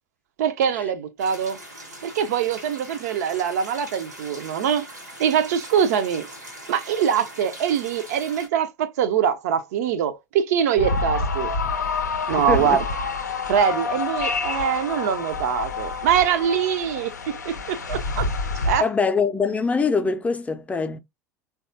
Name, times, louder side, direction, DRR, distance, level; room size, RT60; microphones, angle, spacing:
voice 1, 0.4-1.6 2.0-4.9 5.2-6.3 6.7-11.5 12.3-12.9 13.5-17.1 17.4-18.3 18.7-18.9, right 8 dB, 65° right, 0.4 m, -23 dB
sound 1, 1.2-8.5, right 1 dB, 90° right, 1.0 m, -41 dB
sound 2, 10.8-18.8, left 4 dB, 85° left, 0.5 m, -27 dB
voice 2, 12.3-12.8 18.8-21.0, left 4 dB, 15° left, 0.4 m, -23 dB
3.3 x 2.3 x 2.6 m
figure-of-eight pair, 75°, 9 cm